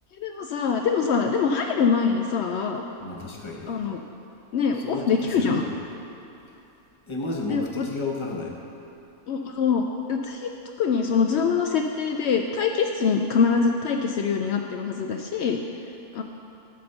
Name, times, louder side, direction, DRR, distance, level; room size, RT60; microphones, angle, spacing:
voice 1, 0.2-2.8 3.7-4.0 4.5-5.6 7.5-7.9 9.3-10.5 10.8-15.6 16.1-16.2, left 5 dB, 85° left, 3 dB, 0.5 m, -24 dB
voice 2, 3.0-3.9 4.7-5.7 7.1-8.6, left 2 dB, 25° left, -1 dB, 0.8 m, -32 dB
13.0 x 4.3 x 6.6 m, 2.8 s
omnidirectional pair, 1.7 m